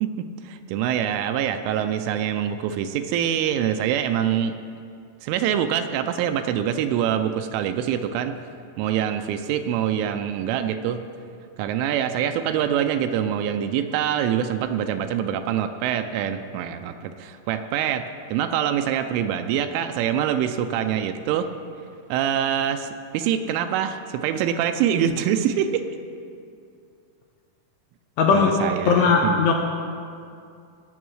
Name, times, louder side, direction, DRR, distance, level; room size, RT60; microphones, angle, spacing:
voice 1, 0.0-4.6 5.2-8.4 8.8-11.0 11.6-21.5 22.1-25.9 28.3-29.5, right 9 dB, 80° right, 8 dB, 3.0 m, -25 dB
voice 2, 28.2-28.6 28.9-29.5, left 5 dB, 75° left, 1 dB, 2.6 m, -18 dB
19.0 x 7.2 x 6.3 m, 2.4 s
omnidirectional pair, 5.8 m